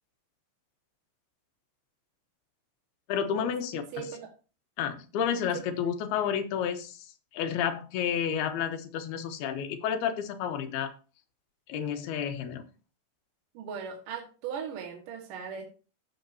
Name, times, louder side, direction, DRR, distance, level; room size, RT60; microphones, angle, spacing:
voice 1, 3.1-4.1 4.8-7.1 7.3-10.9 11.7-12.6, left 8 dB, 90° left, 8 dB, 3.0 m, -31 dB
voice 2, 13.5-15.6, right 7 dB, 65° right, 1 dB, 3.0 m, -38 dB
15.0 x 7.3 x 2.7 m, 0.35 s
omnidirectional pair, 4.4 m